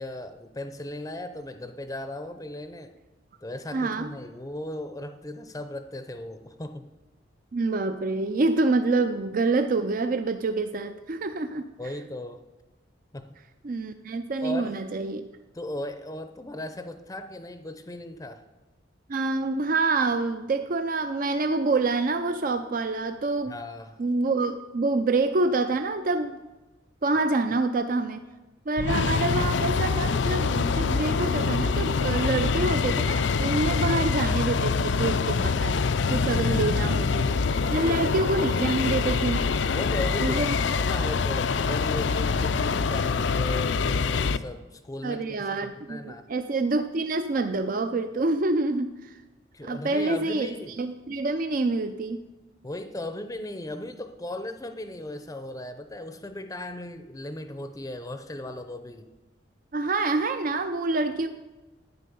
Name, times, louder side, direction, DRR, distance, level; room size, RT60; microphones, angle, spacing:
voice 1, 0.0-2.9 3.4-6.9 11.8-12.4 13.1-13.3 14.4-14.8 15.5-18.4 23.5-24.0 33.7-34.0 36.8-37.0 37.6-38.0 39.7-46.2 49.5-50.8 52.6-59.1, left 1 dB, 20° left, 9 dB, 0.6 m, -37 dB
voice 2, 3.7-4.1 7.5-11.6 13.6-15.2 19.1-23.5 24.0-26.4 27.0-28.2 28.7-35.8 36.1-37.3 37.7-39.5 40.2-40.6 45.0-49.1 49.6-50.5 50.8-52.2 59.7-61.3, right 3 dB, 45° right, 9 dB, 0.5 m, -26 dB
sound 1, 28.8-44.4, left 5 dB, 65° left, 0.5 m, -25 dB
11.0 x 9.2 x 7.0 m, 1.2 s
head